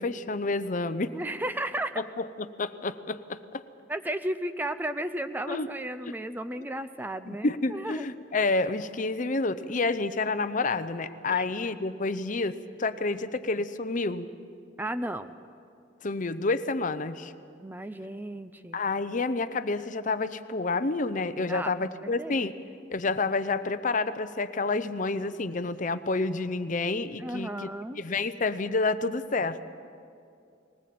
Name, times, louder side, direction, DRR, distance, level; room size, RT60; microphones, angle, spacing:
voice 1, 0.0-1.1 2.0-2.3 2.6-3.6 5.5-5.7 7.3-14.3 16.0-17.3 18.7-22.5 22.9-27.7 28.0-29.7, left 3 dB, 45° left, 12 dB, 0.7 m, -29 dB
voice 2, 1.1-2.0 3.9-8.1 11.3-11.5 14.8-15.3 17.6-18.8 21.5-22.5 27.2-28.0, right 1 dB, 10° right, 10 dB, 0.5 m, -34 dB
20.0 x 19.0 x 7.7 m, 2.4 s
head